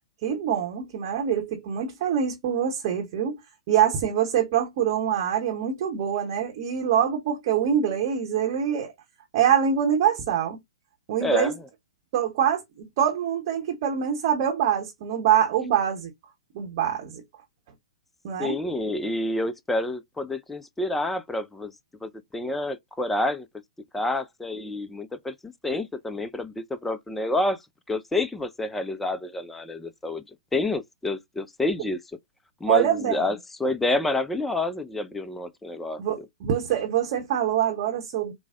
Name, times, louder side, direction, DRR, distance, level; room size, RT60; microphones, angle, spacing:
voice 1, 0.2-3.4 3.7-8.9 9.3-10.6 11.1-11.5 12.1-16.1 16.5-17.2 18.2-18.6 32.7-33.3 36.0-38.3, right 9 dB, 40° right, 0.8 m, -24 dB
voice 2, 11.2-11.5 18.4-21.7 22.0-23.5 23.9-27.6 27.9-30.2 30.5-32.0 32.6-36.0, left 2 dB, 5° left, 0.3 m, -28 dB
4.5 x 2.0 x 2.5 m
figure-of-eight pair, 115°, 3 cm